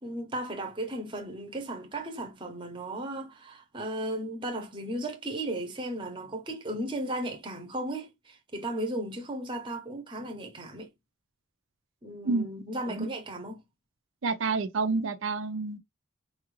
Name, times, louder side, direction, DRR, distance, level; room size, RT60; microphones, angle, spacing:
voice 1, 0.0-10.9 12.0-13.6, right 1 dB, 25° right, 0.8 m, -35 dB
voice 2, 14.2-15.8, right 4 dB, 70° right, 0.6 m, -29 dB
4.5 x 2.4 x 3.0 m
head